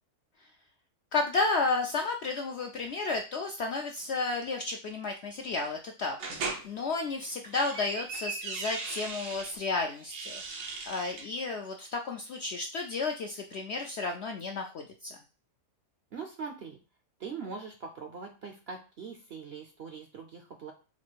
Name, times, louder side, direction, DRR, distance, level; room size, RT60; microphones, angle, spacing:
voice 1, 1.1-15.2, left 3 dB, 70° left, 3 dB, 0.6 m, -32 dB
sound 1, 6.2-6.6 7.3-9.5 10.0-11.3, right 4 dB, 90° right, 1.5 m, -38 dB
voice 2, 16.1-16.8 17.2-20.7, right 5 dB, 60° right, 4 dB, 0.7 m, -42 dB
4.1 x 2.5 x 4.5 m, 0.33 s
omnidirectional pair, 1.6 m